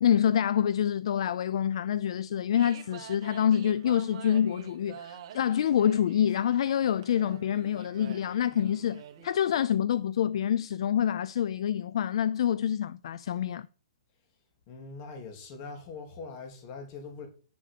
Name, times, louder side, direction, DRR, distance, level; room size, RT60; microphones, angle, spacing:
voice 1, 0.0-13.7, left 9 dB, 60° left, 0.5 m, -27 dB
sound 1, 2.5-9.3, right 9 dB, 45° right, 1.6 m, -47 dB
voice 2, 14.7-17.3, left 4 dB, 35° left, 3.3 m, -42 dB
10.5 x 5.3 x 6.8 m
hypercardioid pair, 150°, 3 cm